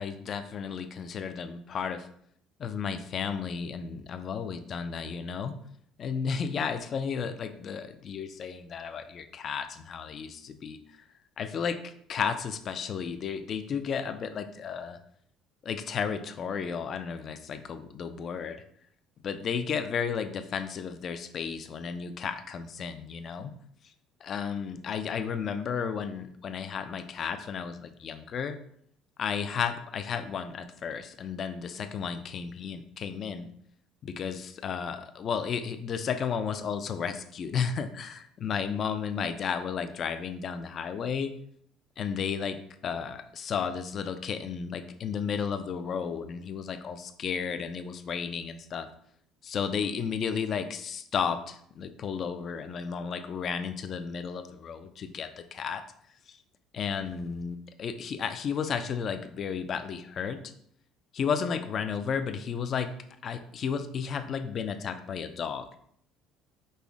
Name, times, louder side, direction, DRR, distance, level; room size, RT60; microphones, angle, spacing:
voice 1, 0.0-2.1 2.6-5.6 6.0-10.8 11.4-15.0 15.6-18.6 19.2-23.5 24.2-28.6 29.2-33.5 34.0-41.3 42.0-42.6 42.8-48.9 49.4-55.8 56.3-56.4 56.7-60.4 61.1-62.9 63.2-65.7, left 6 dB, 35° left, 9 dB, 0.4 m, -33 dB
5.3 x 2.1 x 4.6 m, 0.65 s
cardioid pair, 165°, 0 cm